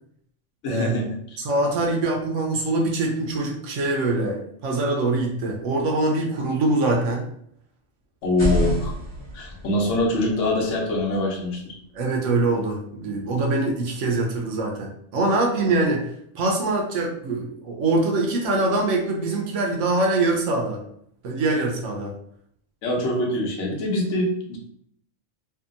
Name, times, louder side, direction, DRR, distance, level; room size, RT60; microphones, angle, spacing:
voice 1, 0.6-1.0 1.3-1.4 8.2-8.9 9.3-11.7 15.7-15.8 22.8-24.6, left 1 dB, 80° left, -1 dB, 1.1 m, -24 dB
voice 2, 1.4-7.3 11.9-16.0 16.3-20.8 21.2-22.1, right 2 dB, 80° right, 0 dB, 1.0 m, -23 dB
sound 1, 8.2-12.1, equal, 25° left, 0.9 m, -30 dB
2.7 x 2.6 x 2.5 m, 0.68 s
omnidirectional pair, 1.2 m